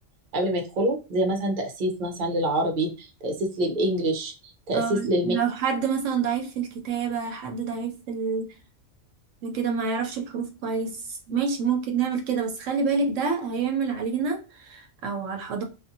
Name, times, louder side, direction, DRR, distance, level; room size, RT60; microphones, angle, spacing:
voice 1, 0.3-4.3 4.7-5.3, right 1 dB, 45° right, 0.7 m, -26 dB
voice 2, 4.7-8.5 9.4-15.6, right 5 dB, 80° right, 0.9 m, -27 dB
2.6 x 2.4 x 2.6 m
omnidirectional pair, 1.3 m